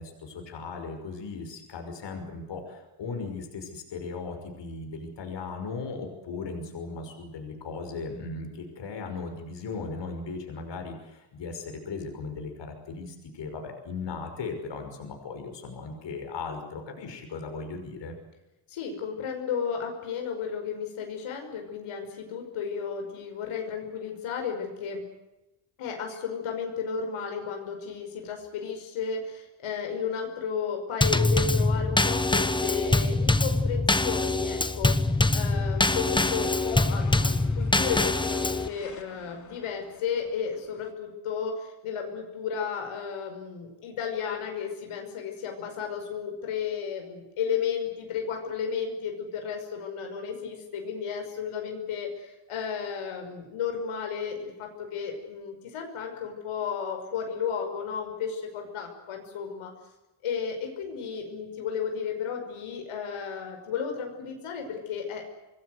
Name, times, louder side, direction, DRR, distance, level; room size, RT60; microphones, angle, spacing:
voice 1, 0.0-18.1, left 4 dB, 60° left, 5 dB, 5.8 m, -37 dB
voice 2, 18.7-25.0 25.8-59.7 60.2-65.3, left 6 dB, 80° left, 3 dB, 5.7 m, -33 dB
Drum kit / Snare drum / Bass drum, 31.0-38.7, left 2 dB, 10° left, 1.0 m, -24 dB
sound 1, 35.3-40.9, left 5 dB, 35° left, 2.8 m, -47 dB
26.5 x 20.5 x 8.1 m, 1.0 s
cardioid pair, 160°, 49 cm